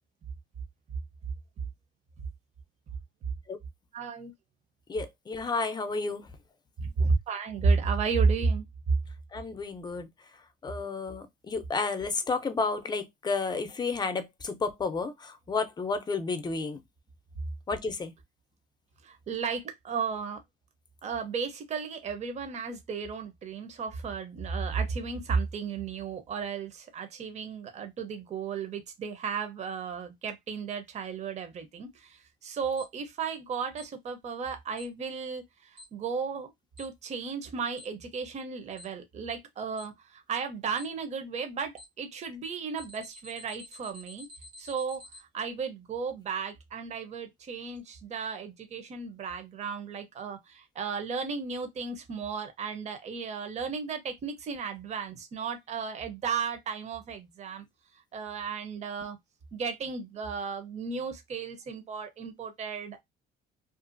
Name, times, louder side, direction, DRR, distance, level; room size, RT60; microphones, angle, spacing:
voice 1, 3.9-4.3 6.8-8.7 19.0-20.4 21.0-36.5 36.8-44.3 44.6-57.6 58.1-59.2 59.5-63.0, right 5 dB, 40° right, 0.7 m, -33 dB
voice 2, 4.9-6.3 9.3-10.1 10.6-16.8 17.7-18.1, left 4 dB, 25° left, 0.6 m, -31 dB
Alarm, 32.8-32.9 33.8-33.9 34.8-34.9 35.8-35.9 36.8-36.9 37.8-37.9 38.8-38.9 39.8-39.9 40.8-40.9 41.8-41.9 42.8-45.2, left 2 dB, 85° right, 1.2 m, -48 dB
2.5 x 2.3 x 2.5 m
cardioid pair, 110°, 17 cm